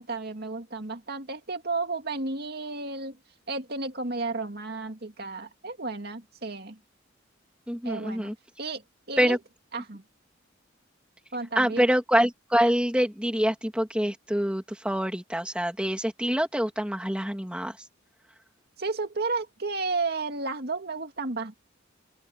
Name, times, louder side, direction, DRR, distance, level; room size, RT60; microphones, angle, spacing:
voice 1, 0.0-3.2 3.5-6.8 7.8-8.8 9.1-9.4 9.7-10.0 11.3-11.9 18.8-21.6, right 3 dB, 55° right, 2.4 m, -32 dB
voice 2, 7.7-8.3 9.2-9.4 11.5-17.8, equal, 5° right, 2.7 m, -25 dB
open air
head